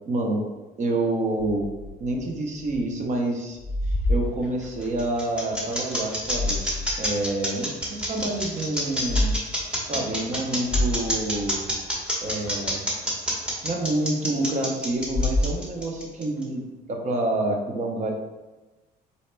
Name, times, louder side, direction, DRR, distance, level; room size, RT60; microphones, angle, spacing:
voice 1, 0.0-0.4 0.8-1.7 2.0-3.6 4.1-6.6 7.0-9.3 9.8-11.7 12.2-12.8 13.6-18.1, right 2 dB, 45° right, 1 dB, 0.9 m, -28 dB
sound 1, 1.4-3.1 3.3-5.1 6.0-7.1 7.5-7.6 8.9-9.3 9.7-9.9 10.3-10.4 10.6-12.0 14.9-16.1, left 1 dB, 25° left, 0.4 m, -28 dB
sound 2, 4.4-16.4, equal, 5° right, 1.2 m, -28 dB
4.6 x 4.2 x 2.2 m, 1.1 s
cardioid pair, 110°, 17 cm